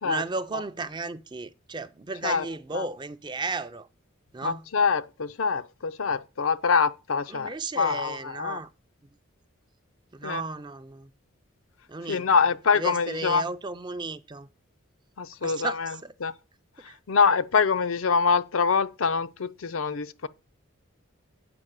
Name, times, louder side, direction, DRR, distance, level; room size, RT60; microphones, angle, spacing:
voice 1, 0.0-3.9 4.3-4.7 7.3-8.7 10.1-11.1 11.9-12.3 12.7-14.5 15.4-16.1 16.8-17.0, right 3 dB, 20° right, 0.4 m, -34 dB
voice 2, 4.4-8.6 10.2-10.4 12.1-13.4 15.2-15.9 16.2-16.3 17.1-20.3, left 5 dB, 75° left, 0.5 m, -25 dB
7.8 x 5.2 x 7.4 m
head